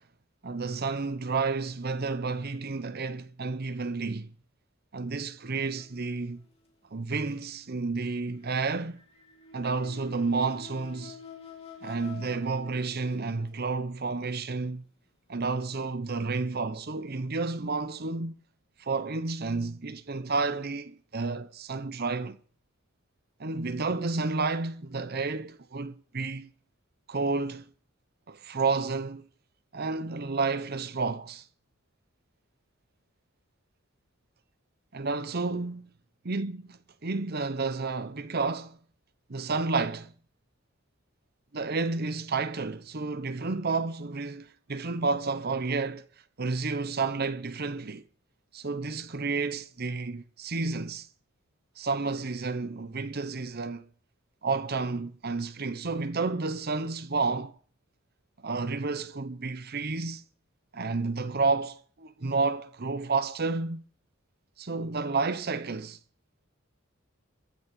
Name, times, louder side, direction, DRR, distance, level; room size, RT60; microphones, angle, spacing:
voice 1, 0.4-4.3 4.9-6.4 6.9-9.0 9.5-11.2 11.8-14.8 15.3-18.4 18.8-22.4 23.4-26.5 27.1-27.7 28.3-29.2 29.7-31.4 34.9-35.8 36.3-38.8 39.3-40.1 41.5-46.1 46.4-48.0 48.5-51.1 51.8-53.9 54.4-57.5 58.4-60.2 60.7-63.8 64.6-66.0, right 4 dB, 50° right, 0.9 m, -31 dB
sound 1, 5.7-6.7 8.7-13.8 14.5-14.7 15.5-15.6, left 5 dB, 30° left, 3.1 m, -48 dB
15.0 x 6.3 x 9.2 m
head